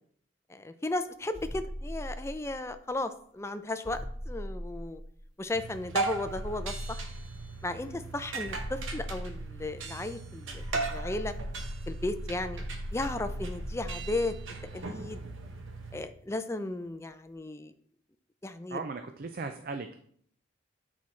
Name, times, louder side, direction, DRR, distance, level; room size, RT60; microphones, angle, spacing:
voice 1, 0.5-4.0 4.3-5.0 5.4-7.0 7.6-11.3 11.9-12.6 12.9-14.3 14.6-15.2 15.9-17.7 18.4-18.8, left 2 dB, 15° left, 9 dB, 0.4 m, -35 dB
sound 1, 1.3-2.8 3.8-5.5 6.2-7.6 8.4-10.0 10.5-15.8, equal, 5° right, 2.6 m, -40 dB
sound 2, 5.5-16.0, right 4 dB, 80° right, 0.9 m, -38 dB
voice 2, 18.7-20.0, right 4 dB, 50° right, 7 dB, 0.4 m, -38 dB
8.3 x 4.5 x 4.2 m, 0.64 s
head